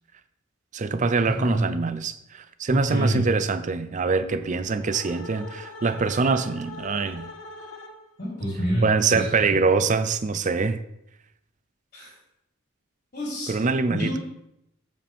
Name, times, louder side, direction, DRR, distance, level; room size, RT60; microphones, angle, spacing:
voice 1, 0.7-7.3 8.8-10.8 13.5-14.2, right 4 dB, 35° right, 0.5 m, -24 dB
voice 2, 1.3-1.7 2.7-3.2 8.2-9.6 11.9-12.1 13.1-13.5 13.9-14.2, equal, 40° left, 3.6 m, -27 dB
sound 1, 4.1-8.3, left 3 dB, 85° left, 1.3 m, -42 dB
13.5 x 5.2 x 3.5 m
head